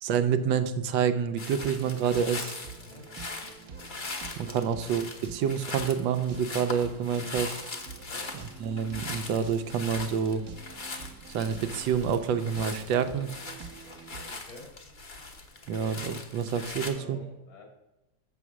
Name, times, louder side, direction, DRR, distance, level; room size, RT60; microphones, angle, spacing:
voice 1, 0.0-2.6 4.4-7.6 8.6-10.4 11.3-13.3 15.7-17.2, right 7 dB, 80° right, 10 dB, 1.4 m, -28 dB
sound 1, 1.4-16.9, left 3 dB, 35° left, 0.8 m, -41 dB
Tecno pop base and leads, 1.5-14.3, right 5 dB, 60° right, 1.1 m, -47 dB
voice 2, 2.7-3.0 4.6-4.7 8.0-8.3 14.1-14.7 16.8-17.6, left 2 dB, 75° left, 1 dB, 2.8 m, -49 dB
6.9 x 6.4 x 6.1 m, 0.99 s
omnidirectional pair, 2.0 m